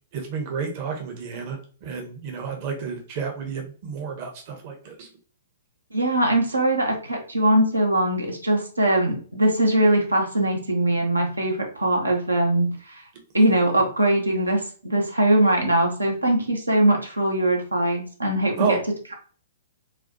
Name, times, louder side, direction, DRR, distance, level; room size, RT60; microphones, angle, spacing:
voice 1, 0.1-5.1 18.6-18.8, right 5 dB, 40° right, 3 dB, 0.8 m, -30 dB
voice 2, 5.9-13.0 13.3-18.8, right 1 dB, 80° right, 1 dB, 0.8 m, -21 dB
4.1 x 2.3 x 2.7 m, 0.41 s
figure-of-eight pair, 115°, 0 cm